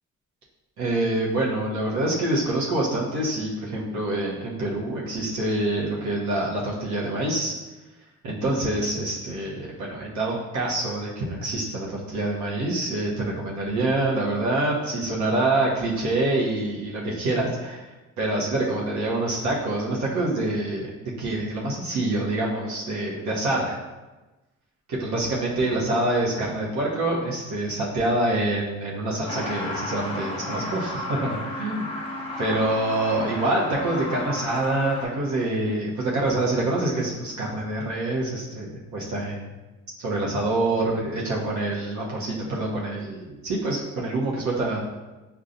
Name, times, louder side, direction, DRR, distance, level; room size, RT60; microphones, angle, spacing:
voice 1, 0.8-7.5 8.2-17.8 18.2-23.8 24.9-31.9 32.4-39.5 40.0-44.8, right 2 dB, 70° right, -4 dB, 0.9 m, -26 dB
Truck, 29.3-35.0, left 1 dB, 20° left, 0.9 m, -33 dB
5.2 x 2.3 x 2.5 m, 1.1 s
cardioid pair, 90°, 30 cm